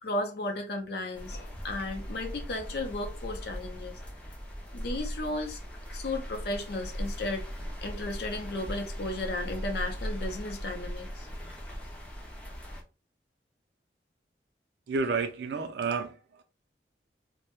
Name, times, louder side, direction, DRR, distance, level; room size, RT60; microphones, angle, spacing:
voice 1, 0.0-4.0 4.7-5.6 5.9-7.5 7.8-11.5, left 2 dB, 60° left, 0.5 m, -34 dB
sound 1, 1.1-12.8, equal, 5° left, 0.4 m, -39 dB
voice 2, 14.9-16.4, right 4 dB, 65° right, 0.4 m, -31 dB
2.1 x 2.1 x 2.9 m
head